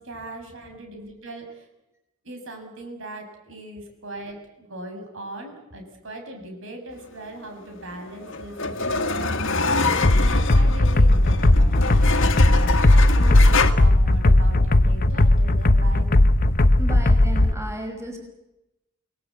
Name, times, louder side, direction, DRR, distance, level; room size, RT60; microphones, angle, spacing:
voice 1, 0.0-1.7 2.2-9.7 10.2-16.1, right 1 dB, 65° right, 4 dB, 6.3 m, -39 dB
sound 1, 7.8-13.7, left 3 dB, 60° left, 2.0 m, -26 dB
sound 2, 10.0-17.5, left 1 dB, 45° left, 1.0 m, -17 dB
voice 2, 16.8-18.2, right 1 dB, 15° right, 2 dB, 5.6 m, -34 dB
28.0 x 19.5 x 8.4 m, 0.90 s
head